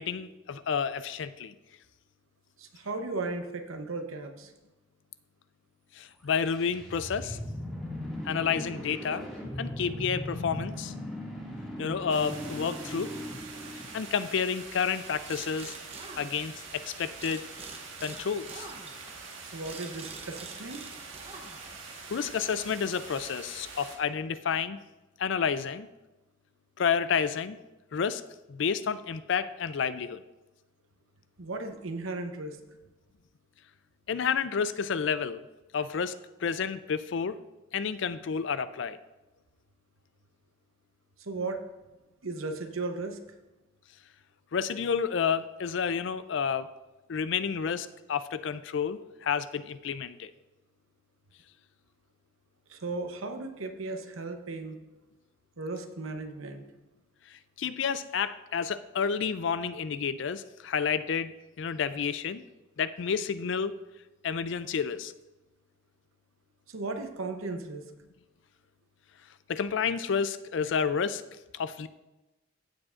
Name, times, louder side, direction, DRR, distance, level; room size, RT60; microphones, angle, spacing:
voice 1, 0.0-1.5 6.0-7.4 8.3-9.3 9.6-10.9 11.8-13.1 13.9-15.8 16.2-17.4 18.0-18.7 22.1-24.8 25.2-25.9 26.8-27.6 27.9-28.2 28.5-30.2 34.1-35.4 35.7-37.4 37.7-39.0 44.5-46.7 47.1-50.3 57.3-62.4 62.8-63.8 64.2-65.1 69.5-71.2 71.5-71.9, left 6 dB, 60° left, 14 dB, 0.4 m, -30 dB
voice 2, 2.6-4.5 19.4-20.9 31.4-32.6 41.2-41.6 42.2-43.2 52.7-54.8 55.6-56.6 66.7-67.9, right 3 dB, 85° right, 6 dB, 0.9 m, -36 dB
sound 1, 6.2-14.3, left 1 dB, ahead, 2.1 m, -38 dB
sound 2, 12.1-24.0, right 4 dB, 70° right, 1.6 m, -45 dB
sound 3, 15.2-16.8 17.2-21.9, right 4 dB, 30° right, 0.9 m, -46 dB
15.0 x 7.2 x 2.5 m, 1.1 s
head